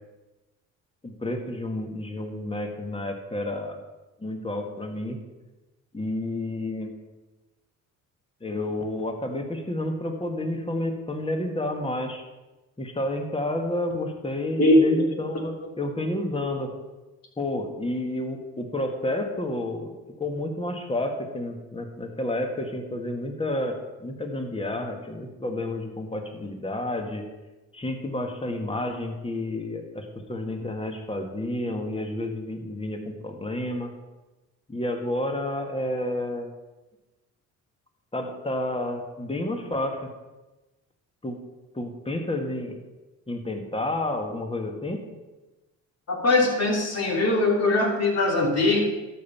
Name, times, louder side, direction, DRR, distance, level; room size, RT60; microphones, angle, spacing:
voice 1, 1.0-3.8 4.2-5.2 5.9-6.9 8.4-12.2 12.8-16.7 17.4-23.8 24.0-27.2 27.7-33.9 34.7-36.5 38.1-40.1 41.2-41.4 41.7-42.8 43.3-45.0, left 1 dB, 15° left, 4 dB, 1.8 m, -30 dB
voice 2, 14.6-15.0 46.1-48.8, left 2 dB, 50° left, 0 dB, 3.3 m, -21 dB
12.5 x 5.6 x 5.7 m, 1.1 s
supercardioid pair, 70°, 34 cm